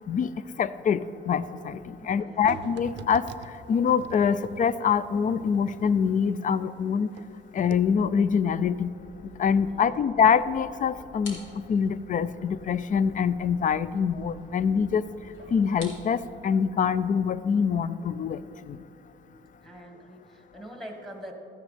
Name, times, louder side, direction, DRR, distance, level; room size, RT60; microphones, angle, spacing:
voice 1, 0.6-3.3 3.7-7.1 7.5-8.9 9.4-11.4 11.7-15.0 15.5-18.4 18.7-18.8, left 7 dB, 40° left, 16 dB, 0.4 m, -25 dB
voice 2, 2.0-2.5 9.7-10.0 19.6-21.3, equal, ahead, 2 dB, 1.7 m, -44 dB
sound 1, 2.5-7.3 7.6-7.7, right 8 dB, 65° right, 0.5 m, -44 dB
sound 2, 7.6-16.2, left 1 dB, 85° left, 2.2 m, -49 dB
13.0 x 9.4 x 3.4 m, 2.9 s
cardioid pair, 90°, 20 cm